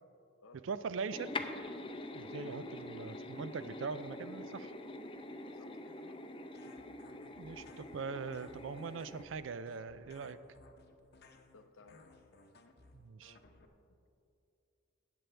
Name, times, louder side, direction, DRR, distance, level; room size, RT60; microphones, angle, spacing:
voice 1, 0.6-1.3 2.1-4.7 7.4-10.4 12.9-13.4, right 5 dB, 70° right, 14 dB, 0.4 m, -41 dB
sound 1, 1.1-9.2, left 2 dB, 25° left, 0.5 m, -45 dB
voice 2, 2.1-2.6 5.4-6.2 11.5-12.1, left 3 dB, 85° left, 8 dB, 0.7 m, -60 dB
sound 2, 6.5-13.7, left 3 dB, 55° left, 0.8 m, -60 dB
18.0 x 7.7 x 3.4 m, 2.6 s
head